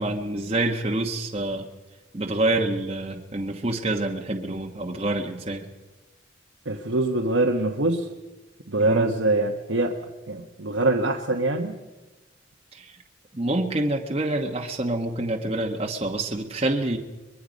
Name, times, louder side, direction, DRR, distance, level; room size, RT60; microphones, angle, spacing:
voice 1, 0.0-1.7 2.1-5.7 8.8-9.1 12.7-12.9 13.3-17.0, right 2 dB, 30° right, 1 dB, 1.2 m, -27 dB
voice 2, 6.6-8.1 8.7-9.9 10.3-11.7, right 2 dB, 90° right, 2 dB, 1.4 m, -24 dB
23.5 x 21.5 x 5.3 m, 1.1 s
head